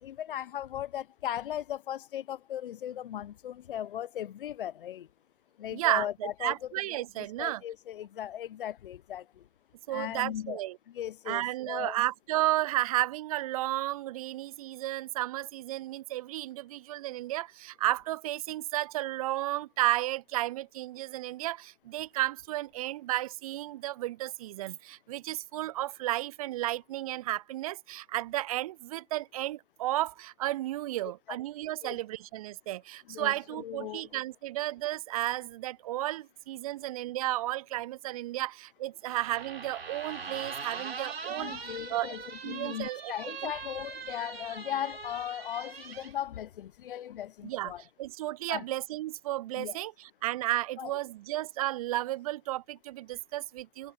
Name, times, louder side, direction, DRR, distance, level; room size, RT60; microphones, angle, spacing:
voice 1, 0.0-5.1 5.6-6.5 7.2-9.5 9.9-10.6 10.9-12.0 31.0-31.4 31.8-32.0 33.1-34.1 41.3-47.8 48.5-48.6 49.5-49.8 50.8-50.9, left 11 dB, 60° left, 1.0 m, -37 dB
voice 2, 5.7-7.6 9.9-10.8 11.3-42.2 42.4-43.1 43.4-43.5 47.4-47.7 48.0-53.9, right 15 dB, 40° right, 0.4 m, -33 dB
sound 1, 39.1-46.1, right 5 dB, 75° right, 4.0 m, -41 dB
figure-of-eight pair, 105°, 30 cm